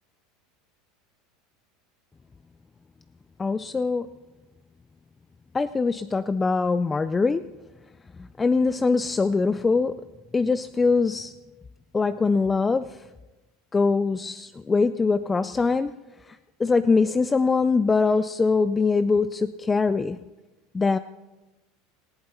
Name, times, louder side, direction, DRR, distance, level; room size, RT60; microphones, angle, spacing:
voice 1, 3.4-4.1 5.5-7.6 8.2-10.0 10.3-11.3 11.9-13.0 13.7-16.0 16.3-20.2 20.7-21.0, left 4 dB, 15° left, 13 dB, 0.4 m, -23 dB
19.0 x 14.5 x 4.3 m, 1.1 s
supercardioid pair, 130°, 0 cm